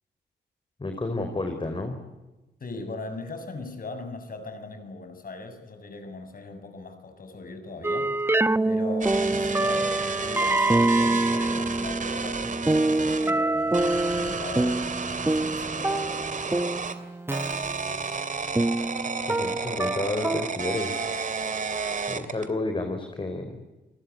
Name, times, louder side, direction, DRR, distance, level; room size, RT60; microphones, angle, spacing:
voice 1, 0.8-2.0 19.3-21.2 22.1-23.6, left 2 dB, 30° left, 5 dB, 4.6 m, -31 dB
voice 2, 2.6-8.2 8.6-13.8 14.1-16.6, left 3 dB, 50° left, 8 dB, 7.3 m, -40 dB
sound 1, 7.8-20.5, right 2 dB, 15° right, 0.9 m, -26 dB
sound 2, 9.0-13.3 13.7-17.0 17.3-22.5, right 5 dB, 45° right, 2.8 m, -32 dB
29.5 x 20.0 x 9.8 m, 1.1 s
cardioid pair, 75°, 18 cm